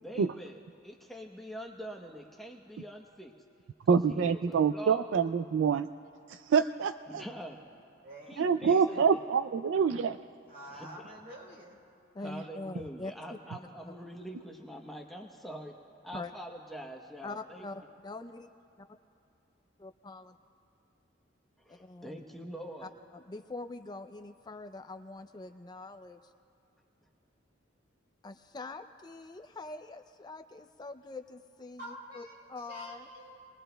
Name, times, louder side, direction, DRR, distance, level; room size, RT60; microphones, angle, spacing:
voice 1, 0.0-3.3 3.8-5.1 7.1-7.6 8.3-9.2 10.7-10.9 12.2-15.8 16.0-17.7 21.6-22.9, equal, ahead, 0 dB, 0.9 m, -44 dB
voice 2, 3.9-5.9 6.3-7.2 8.4-10.2, right 6 dB, 75° right, 10 dB, 0.3 m, -26 dB
voice 3, 8.0-9.1 10.5-11.8 31.8-33.5, equal, 55° right, -2 dB, 3.6 m, -47 dB
voice 4, 12.1-13.1 16.1-16.3 17.2-18.5 18.8-18.9 19.8-20.3 21.8-22.2 22.8-26.2 28.2-32.2 32.5-33.1, left 3 dB, 20° left, 7 dB, 0.4 m, -44 dB
28.5 x 20.5 x 2.2 m, 2.5 s
head